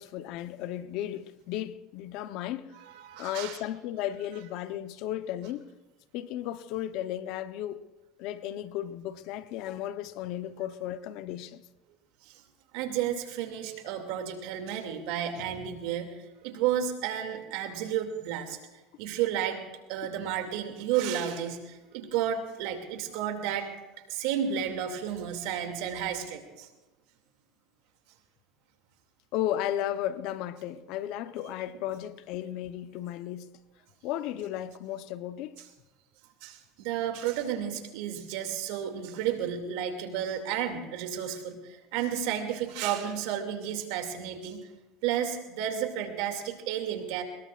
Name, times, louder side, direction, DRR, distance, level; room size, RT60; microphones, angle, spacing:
voice 1, 0.0-2.7 3.2-5.7 6.1-7.8 8.2-11.6 29.3-33.5 34.0-35.6, left 12 dB, 65° left, 0.9 m, -34 dB
voice 2, 2.8-3.6 12.2-12.4 12.7-18.6 19.0-19.6 19.9-23.7 24.1-26.7 36.4-44.6 45.0-47.2, right 9 dB, 75° right, 2.5 m, -32 dB
22.5 x 21.0 x 2.5 m
supercardioid pair, 105°, 0 cm